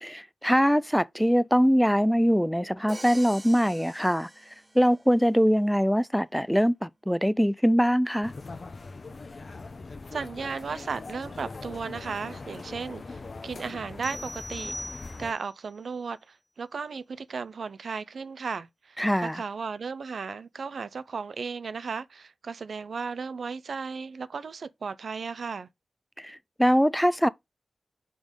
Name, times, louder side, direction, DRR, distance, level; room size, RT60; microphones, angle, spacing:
voice 1, 0.0-4.3 4.7-8.3 19.0-19.4 26.2-27.3, equal, ahead, 0.4 m, -23 dB
Crash cymbal, 2.9-5.1, right 1 dB, 25° right, 1.0 m, -45 dB
sound 1, 8.2-15.3, left 3 dB, 55° left, 0.8 m, -41 dB
voice 2, 10.1-14.7 15.2-25.7, right 5 dB, 80° right, 0.5 m, -35 dB
sound 2, 14.0-15.6, equal, 30° left, 1.5 m, -40 dB
5.3 x 5.1 x 3.7 m
wide cardioid pair, 65°, 0 cm